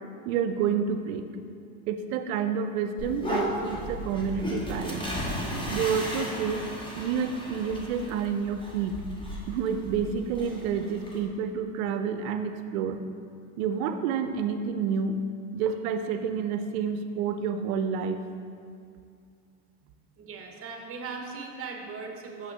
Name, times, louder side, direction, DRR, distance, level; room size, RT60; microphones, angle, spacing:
voice 1, 0.3-1.2 1.9-5.1 5.7-6.7 7.0-9.0 9.5-13.0 13.6-15.2 15.5-18.2, right 6 dB, 70° right, 7 dB, 0.6 m, -29 dB
sound 1, 3.0-11.2, equal, 10° left, 1.1 m, -35 dB
voice 2, 19.8-22.5, right 4 dB, 30° right, 2 dB, 0.9 m, -39 dB
6.4 x 5.8 x 3.3 m, 2.3 s
supercardioid pair, 100°, 43 cm